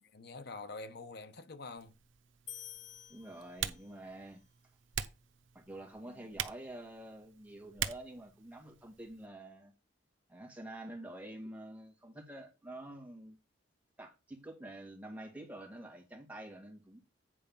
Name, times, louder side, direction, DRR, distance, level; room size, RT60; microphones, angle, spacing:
voice 1, 0.0-1.9 6.0-6.3, left 3 dB, 60° left, 1.0 m, -46 dB
Typing, 1.8-9.3, right 9 dB, 85° right, 0.8 m, -44 dB
sound 1, 2.5-4.1, left 12 dB, 40° left, 0.5 m, -50 dB
voice 2, 3.1-4.4 5.5-9.7 10.3-13.4 14.0-17.0, right 1 dB, 10° right, 2.3 m, -48 dB
9.1 x 4.3 x 5.5 m
head